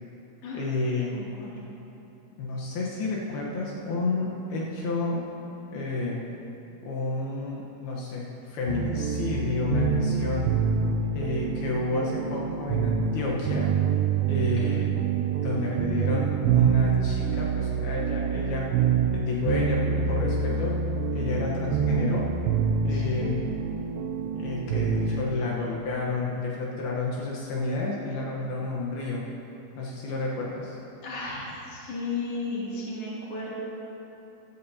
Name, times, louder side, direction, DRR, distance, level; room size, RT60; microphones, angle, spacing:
voice 1, 0.5-1.1 2.4-5.2 5.7-6.2 6.8-10.5 11.1-13.7 14.3-15.0 15.4-18.7 19.1-20.8 21.1-22.3 22.8-23.4 24.4-29.3 29.8-30.8, left 3 dB, 75° left, -4 dB, 3.0 m, -30 dB
voice 2, 1.1-1.5 14.6-14.8 22.9-23.3 31.0-33.5, left 3 dB, 40° left, -7 dB, 3.1 m, -34 dB
sound 1, 8.7-25.3, right 6 dB, 85° right, 2.6 m, -26 dB
15.0 x 14.0 x 2.8 m, 3.0 s
omnidirectional pair, 4.5 m